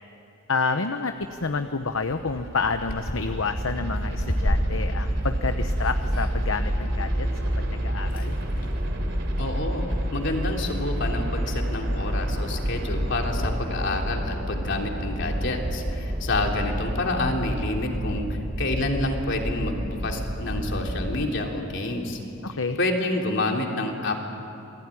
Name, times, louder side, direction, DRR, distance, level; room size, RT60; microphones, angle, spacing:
voice 1, 0.5-1.1 1.4-7.3 7.6-8.3 22.4-22.8, left 4 dB, 75° left, 8 dB, 0.9 m, -29 dB
sound 1, 0.9-7.8 8.1-8.8 9.7-10.1 10.6-10.7 10.9-14.1, equal, 45° left, 2.6 m, -34 dB
sound 2, 1.8-21.2, equal, 65° right, 3.6 m, -29 dB
voice 2, 9.4-9.8 10.1-22.2 22.5-24.1, left 2 dB, 60° left, 1 dB, 3.3 m, -28 dB
28.0 x 20.0 x 10.0 m, 2.8 s
head